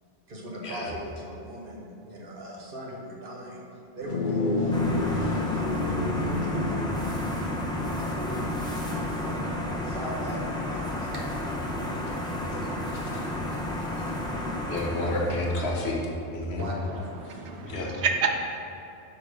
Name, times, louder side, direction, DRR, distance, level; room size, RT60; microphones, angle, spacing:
voice 1, 0.3-3.6 3.9-11.3 11.7-12.8 16.5-17.2, equal, 55° right, -3 dB, 1.2 m, -41 dB
sound 1, 4.0-13.6, left 2 dB, 50° left, 0.7 m, -32 dB
sound 2, 4.7-16.0, left 1 dB, 5° left, 0.7 m, -32 dB
voice 2, 14.7-16.0 16.3-16.7 17.6-17.9, left 2 dB, 70° left, -2 dB, 1.2 m, -29 dB
voice 3, 16.8-18.5, right 5 dB, 75° right, 5 dB, 0.8 m, -29 dB
5.6 x 5.0 x 5.1 m, 2.8 s
omnidirectional pair, 1.2 m